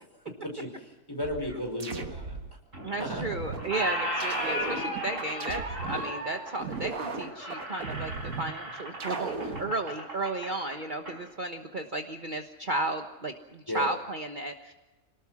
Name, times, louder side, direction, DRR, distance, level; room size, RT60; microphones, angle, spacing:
voice 1, 0.4-2.3 3.0-3.4 13.7-13.8, left 1 dB, 15° left, 2 dB, 5.1 m, -35 dB
sound 1, 1.2-2.5 3.0-3.7 4.2-6.1 6.6-8.5 9.0-9.7, right 4 dB, 85° right, 2.1 m, -36 dB
Squeak, 2.7-3.3 3.6-11.2, equal, 65° right, 5.6 m, -36 dB
voice 2, 2.8-14.7, right 2 dB, 35° right, 5 dB, 1.4 m, -34 dB
27.0 x 19.0 x 6.2 m, 1.1 s
omnidirectional pair, 1.4 m